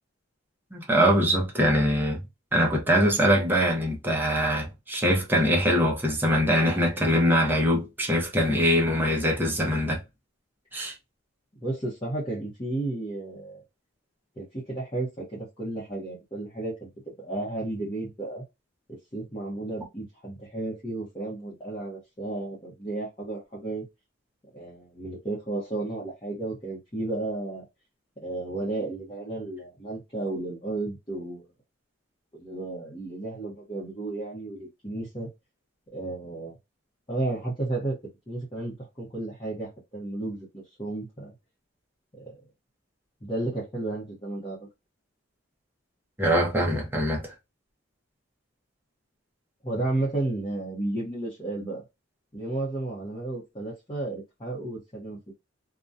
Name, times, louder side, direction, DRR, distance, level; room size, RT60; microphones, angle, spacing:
voice 1, 0.7-2.2 2.5-10.0 10.7-10.9 46.2-47.3, equal, 10° right, 0.7 m, -23 dB
voice 2, 11.6-13.6 14.4-16.9 17.2-18.4 18.9-23.8 24.5-27.7 28.2-31.5 32.3-35.3 35.9-36.5 37.1-38.0 38.3-41.3 42.2-42.3 43.2-44.6 49.6-51.8 52.3-55.3, right 2 dB, 25° left, 0.9 m, -33 dB
2.6 x 2.3 x 2.3 m
head